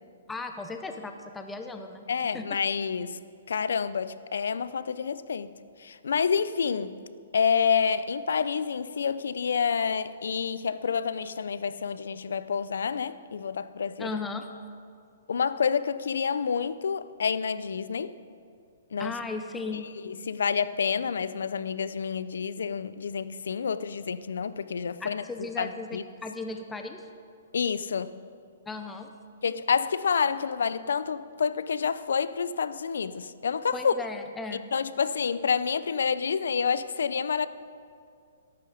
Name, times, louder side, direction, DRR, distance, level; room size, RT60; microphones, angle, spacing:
voice 1, 0.3-2.6 14.0-14.5 19.0-19.9 25.0-27.0 28.7-29.1 33.7-34.6, left 3 dB, 5° left, 0.7 m, -36 dB
voice 2, 2.1-3.2 3.5-7.0 7.3-14.2 15.3-18.1 18.9-19.2 19.7-25.2 25.6-26.0 27.5-28.2 29.4-33.9 34.7-37.5, left 6 dB, 80° left, 0.6 m, -28 dB
14.5 x 11.5 x 5.0 m
hypercardioid pair, 155°, 0 cm